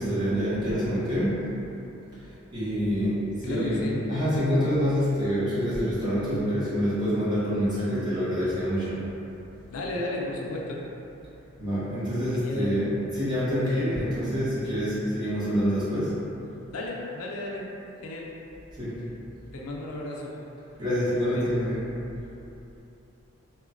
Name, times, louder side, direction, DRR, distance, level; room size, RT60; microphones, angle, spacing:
voice 1, 0.0-1.4 2.2-9.0 11.6-16.2 18.7-19.0 20.8-21.8, equal, 20° right, -12 dB, 0.8 m, -26 dB
voice 2, 3.4-4.1 9.7-10.8 12.2-12.8 16.7-17.7 18.0-18.4 19.5-20.4 21.2-21.5, left 2 dB, 85° left, -3 dB, 0.4 m, -34 dB
3.0 x 2.1 x 2.4 m, 2.8 s
head